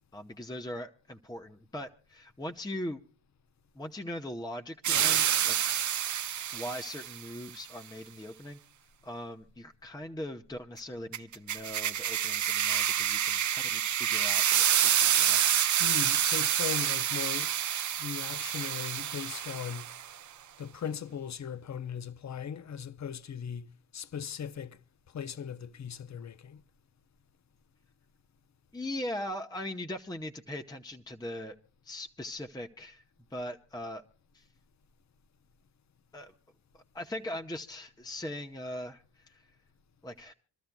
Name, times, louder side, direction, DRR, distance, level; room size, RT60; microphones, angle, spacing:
voice 1, 0.1-3.0 3.7-5.6 6.5-8.6 9.0-15.4 28.7-31.6 31.8-33.0 33.3-34.0 34.3-34.5 36.1-36.3 36.7-39.5 40.0-40.3, left 1 dB, 10° left, 0.8 m, -40 dB
sound 1, 4.8-7.2 11.1-20.1, right 10 dB, 45° right, 0.5 m, -28 dB
voice 2, 15.8-17.5 18.0-19.9 20.6-24.8 25.1-26.6, left 8 dB, 40° left, 0.7 m, -39 dB
26.5 x 13.0 x 2.3 m
cardioid pair, 95°, 44 cm